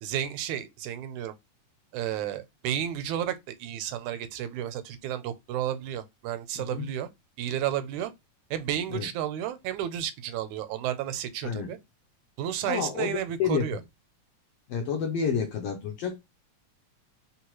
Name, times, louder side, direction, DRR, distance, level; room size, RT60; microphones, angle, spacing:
voice 1, 0.0-1.4 1.9-7.1 7.4-8.1 8.5-11.8 12.4-13.8, right 11 dB, 85° right, 2.0 m, -32 dB
voice 2, 6.5-6.9 8.9-9.1 11.4-11.7 12.6-13.8 14.7-16.2, left 6 dB, 75° left, 1.5 m, -30 dB
4.4 x 3.4 x 3.0 m
omnidirectional pair, 3.4 m